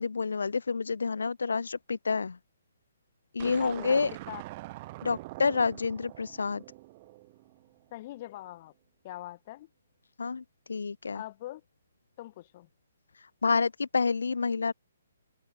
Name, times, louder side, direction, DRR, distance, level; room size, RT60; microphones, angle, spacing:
voice 1, 0.0-2.4 3.3-4.1 5.0-6.6 10.2-11.2 13.1-14.7, left 4 dB, 65° left, 3.5 m, -29 dB
voice 2, 3.4-4.0 4.3-4.4 7.9-8.7 9.0-9.7 11.1-11.6 12.2-12.7, left 15 dB, 35° left, 5.2 m, -42 dB
sound 1, 3.4-7.8, right 20 dB, 30° right, 6.1 m, -44 dB
figure-of-eight pair, 130°, 0 cm